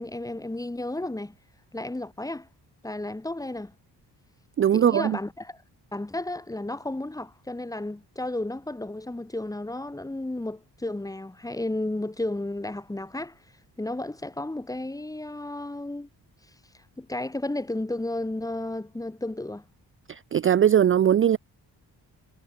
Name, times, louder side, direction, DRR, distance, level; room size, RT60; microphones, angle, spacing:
voice 1, 0.0-1.3 1.7-2.5 2.8-3.7 4.7-5.6 5.9-13.4 13.8-16.1 17.0-19.6, left 2 dB, 10° left, 1.3 m, -33 dB
voice 2, 4.6-5.2 20.1-21.4, right 9 dB, 35° right, 0.4 m, -20 dB
wide cardioid pair, 150°, 41 cm